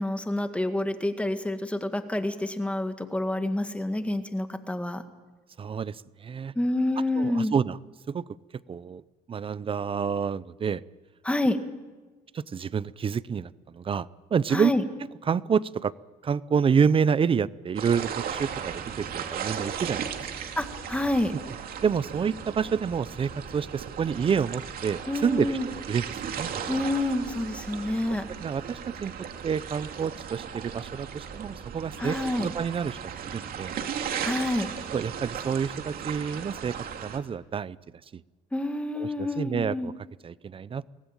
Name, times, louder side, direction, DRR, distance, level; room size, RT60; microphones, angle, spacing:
voice 1, 0.0-5.0 6.6-7.5 11.2-11.6 14.5-14.8 20.6-21.4 25.1-25.7 26.7-28.3 32.0-32.5 34.2-34.7 38.5-39.9, left 1 dB, 5° left, 8 dB, 1.9 m, -28 dB
voice 2, 5.6-6.5 7.2-7.8 8.1-8.3 8.7-9.0 9.3-10.8 12.3-14.7 15.3-15.9 16.2-20.1 21.8-25.6 25.9-26.6 28.4-29.1 29.4-33.7 34.9-37.8 38.1-38.2 39.0-39.9 40.2-40.8, right 6 dB, 30° right, 19 dB, 0.6 m, -28 dB
sound 1, 17.7-37.2, right 7 dB, 60° right, 2.6 m, -36 dB
23.0 x 18.0 x 9.0 m, 1.3 s
cardioid pair, 110°, 17 cm